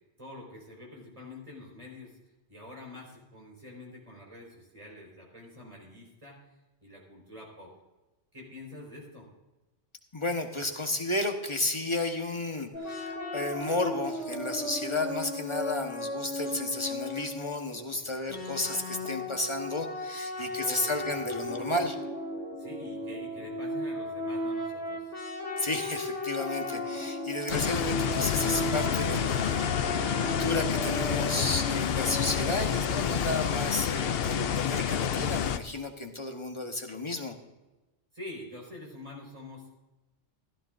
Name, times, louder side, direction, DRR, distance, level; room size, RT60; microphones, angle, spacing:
voice 1, 0.2-2.2 2.5-6.4 6.8-7.7 8.3-9.3 18.1-18.4 20.3-21.0 21.3-21.7 22.6-25.2 38.1-39.7, left 1 dB, 30° right, -1 dB, 4.6 m, -46 dB
voice 2, 10.1-22.0 25.6-37.3, left 2 dB, 25° left, 4 dB, 1.2 m, -32 dB
sound 1, 12.7-17.8 18.3-32.6, left 1 dB, 80° left, 2.6 m, -35 dB
sound 2, 27.5-35.6, left 8 dB, 65° left, 0.8 m, -29 dB
16.0 x 14.0 x 2.6 m, 1.1 s
omnidirectional pair, 1.2 m